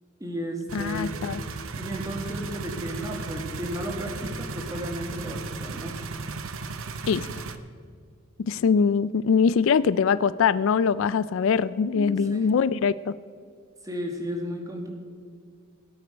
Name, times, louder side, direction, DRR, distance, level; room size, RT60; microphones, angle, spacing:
voice 1, 0.2-1.2 1.8-6.0 11.9-12.6 13.8-14.9, equal, 15° right, 2 dB, 1.9 m, -34 dB
voice 2, 0.7-1.4 7.1-7.3 8.4-13.1, left 6 dB, 65° left, 17 dB, 0.3 m, -23 dB
sound 1, 0.7-7.6, right 4 dB, 70° right, 0.8 m, -35 dB
17.5 x 8.6 x 5.2 m, 2.2 s
head